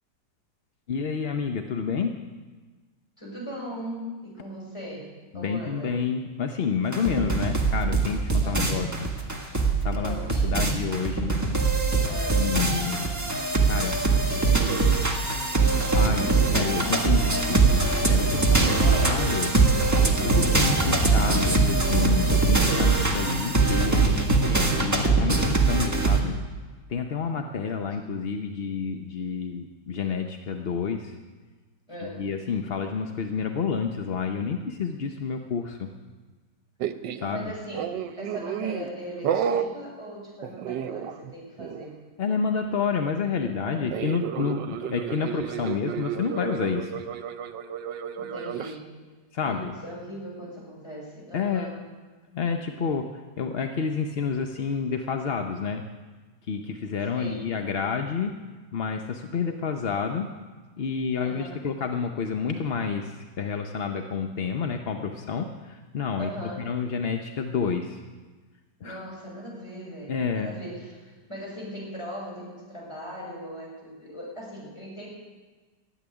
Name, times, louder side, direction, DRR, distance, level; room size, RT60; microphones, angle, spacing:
voice 1, 0.9-2.2 5.3-9.1 9.8-11.3 12.4-13.1 13.6-14.0 14.7-14.8 15.9-17.6 18.0-18.7 19.0-19.5 19.9-24.2 24.8-26.4 26.9-31.1 32.0-35.9 37.2-37.4 42.2-47.0 49.3-49.7 51.3-51.7 52.3-53.1 53.4-55.8 56.5-58.3 58.7-60.3 60.8-68.0 68.8-69.0 70.1-70.5, left 6 dB, 50° left, 5 dB, 0.7 m, -29 dB
voice 2, 3.2-5.9 8.4-8.7 10.0-10.6 12.0-12.5 18.6-19.3 27.5-27.8 31.9-32.3 37.3-42.0 43.5-44.3 48.2-48.9 49.4-51.8 57.1-57.5 61.2-61.6 66.2-66.7 68.8-75.1, equal, 15° left, -4 dB, 6.1 m, -39 dB
sound 1, 6.9-26.2, right 3 dB, 10° right, 1.4 m, -22 dB
sound 2, 36.8-37.3 37.7-38.9 39.2-39.7 40.4-41.3 41.6-41.9 43.9-48.7, right 8 dB, 85° right, 1.4 m, -31 dB
14.0 x 8.5 x 9.9 m, 1.3 s
omnidirectional pair, 1.9 m